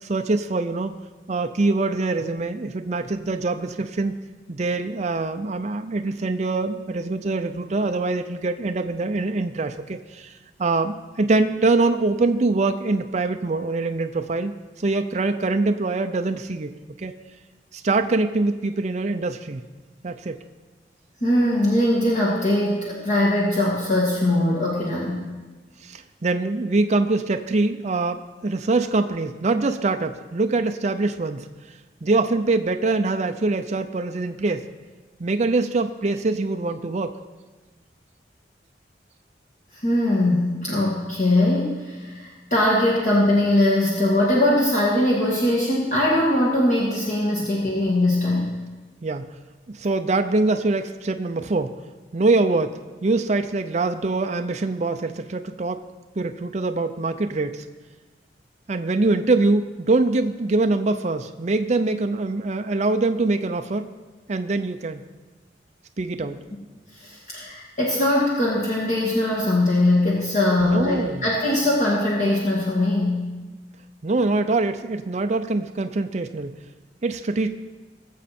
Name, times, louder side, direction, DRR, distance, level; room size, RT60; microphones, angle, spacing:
voice 1, 0.0-0.9 1.3-4.1 4.5-10.3 10.6-14.5 14.8-17.1 17.7-19.6 20.0-20.4 25.8-34.7 35.2-37.2 49.0-49.3 49.7-51.7 52.1-55.8 56.2-57.6 58.7-63.9 64.3-65.0 66.0-66.4 70.6-71.2 74.0-76.6 77.0-77.5, right 3 dB, 40° right, 7 dB, 0.5 m, -24 dB
voice 2, 21.2-25.3 39.7-48.5 66.9-73.3, left 1 dB, 45° left, -5 dB, 2.0 m, -21 dB
20.0 x 7.3 x 4.3 m, 1.3 s
head